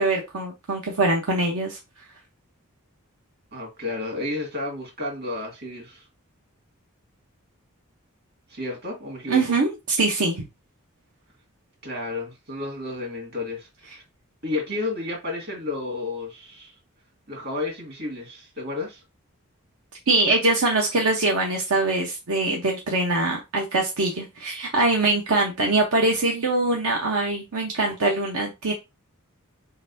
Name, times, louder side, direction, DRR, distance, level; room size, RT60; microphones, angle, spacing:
voice 1, 0.0-1.8 9.3-10.4 20.1-28.7, right 2 dB, 80° right, 1.0 m, -23 dB
voice 2, 3.5-6.1 8.5-9.4 11.8-14.0 14.4-16.7 17.3-19.0, left 2 dB, 45° right, 1.9 m, -32 dB
4.3 x 3.9 x 2.6 m
head